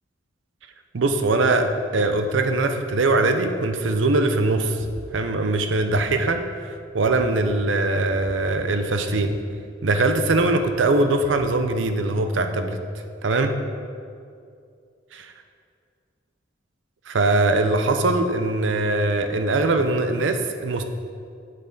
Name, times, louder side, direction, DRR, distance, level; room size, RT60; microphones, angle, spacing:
voice 1, 0.9-4.8 5.1-6.4 6.7-9.3 9.8-12.8 13.2-13.5 15.1-15.3 17.1-20.8, right 2 dB, 85° right, 7 dB, 0.6 m, -21 dB
sound 1, 4.8-5.2 5.9-6.4 7.0-7.5 8.1-8.5 9.2-9.6 10.2-10.5 11.2-11.6, equal, 50° left, 1.4 m, -41 dB
8.5 x 6.8 x 3.9 m, 2.4 s
head